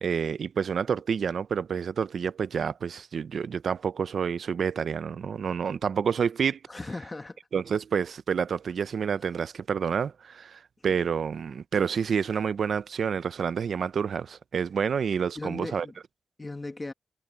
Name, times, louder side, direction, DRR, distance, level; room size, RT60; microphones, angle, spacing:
voice 1, 0.0-6.6 7.5-15.9, right 7 dB, 75° right, 0.5 m, -28 dB
voice 2, 6.7-7.4 15.3-16.0 16.4-16.9, left 2 dB, 25° left, 1.5 m, -37 dB
wide cardioid pair, 105°, 0 cm